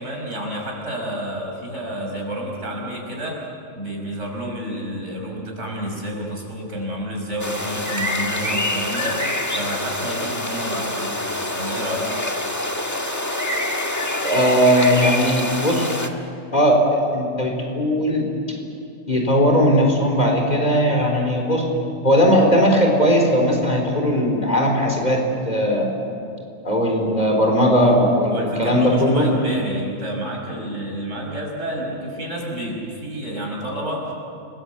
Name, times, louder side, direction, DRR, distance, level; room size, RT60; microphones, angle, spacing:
voice 1, 0.0-3.4 3.7-9.2 9.5-11.2 11.5-12.1 28.3-34.1, equal, 65° right, -1 dB, 6.0 m, -29 dB
sound 1, 7.4-16.1, left 1 dB, 15° left, 1.5 m, -26 dB
voice 2, 14.2-15.9 16.5-18.3 19.1-21.6 22.0-25.9 26.6-29.3, equal, 35° left, 1 dB, 4.4 m, -18 dB
30.0 x 21.0 x 8.1 m, 2.6 s
omnidirectional pair, 1.3 m